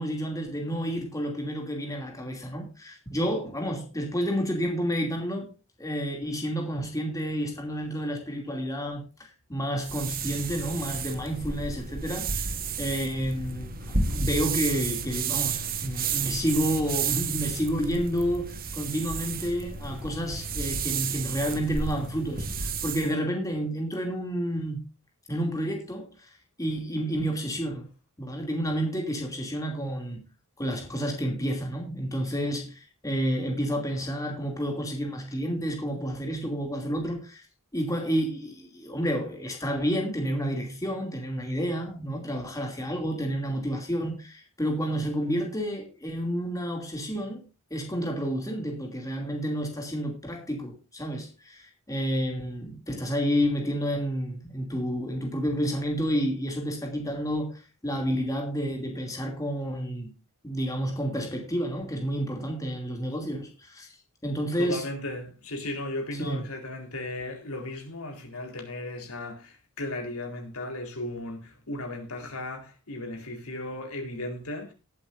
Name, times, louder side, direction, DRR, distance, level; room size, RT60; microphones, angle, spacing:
voice 1, 0.0-5.5 5.8-24.8 25.3-26.3 26.6-27.9 28.2-30.2 30.6-37.4 37.7-47.4 47.7-60.1 60.4-63.9 64.2-64.8 66.1-66.4, equal, 15° left, 2.7 m, -30 dB
sound 1, 9.8-23.1, right 5 dB, 40° right, 1.3 m, -32 dB
voice 2, 64.6-74.7, left 1 dB, 75° left, 4.0 m, -36 dB
19.0 x 8.5 x 2.6 m
head